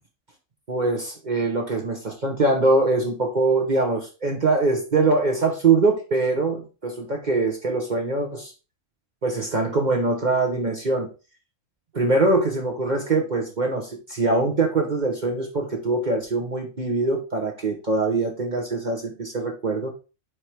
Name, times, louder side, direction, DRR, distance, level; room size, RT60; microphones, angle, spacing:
voice 1, 0.7-8.5 9.2-11.1 11.9-19.9, right 3 dB, 40° right, 1 dB, 1.0 m, -23 dB
4.9 x 4.7 x 4.5 m, 0.32 s
omnidirectional pair, 1.3 m